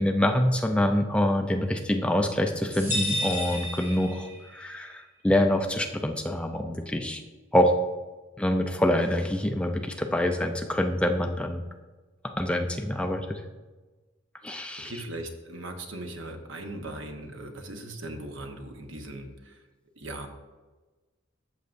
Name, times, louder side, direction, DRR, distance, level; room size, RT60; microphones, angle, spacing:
voice 1, 0.0-7.2 7.5-7.7 8.4-11.6 12.4-13.4 14.4-14.9, left 1 dB, 5° left, 4 dB, 0.5 m, -25 dB
sound 1, 2.7-4.6, left 1 dB, 10° right, 2.7 m, -31 dB
voice 2, 14.5-19.6 20.0-20.3, right 1 dB, 70° right, 4 dB, 1.1 m, -39 dB
13.5 x 6.7 x 2.6 m, 1.2 s
head